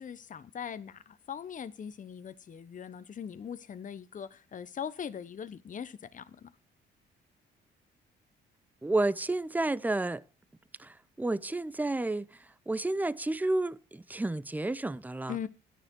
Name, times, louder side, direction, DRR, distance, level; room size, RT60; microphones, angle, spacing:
voice 1, 0.0-6.5 15.3-15.5, left 8 dB, 40° left, 0.9 m, -41 dB
voice 2, 8.8-10.2 10.8-12.4 12.7-15.4, right 2 dB, 10° right, 0.6 m, -31 dB
11.5 x 10.0 x 4.6 m
cardioid pair, 90°, 20 cm